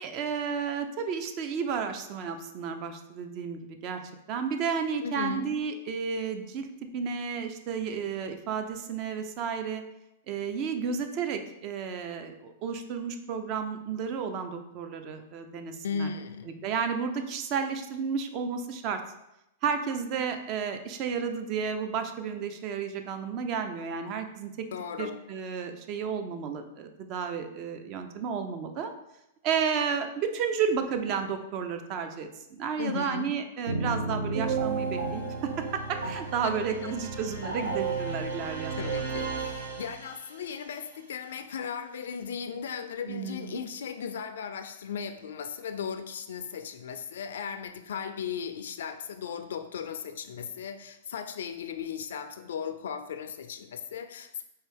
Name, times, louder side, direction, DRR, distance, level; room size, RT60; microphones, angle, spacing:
voice 1, 0.0-4.0 4.3-6.7 6.9-9.8 10.3-16.1 16.6-19.0 19.6-24.7 25.0-28.9 29.4-38.8 43.1-43.6, right 6 dB, 40° right, 7 dB, 0.5 m, -32 dB
voice 2, 5.0-5.6 15.8-16.5 24.7-25.2 32.8-33.3 36.4-37.0 38.8-54.4, left 7 dB, 75° left, 7 dB, 0.3 m, -36 dB
sound 1, 33.7-40.4, right 4 dB, 85° right, 0.8 m, -33 dB
4.4 x 2.7 x 3.4 m, 0.85 s
hypercardioid pair, 125°, 0 cm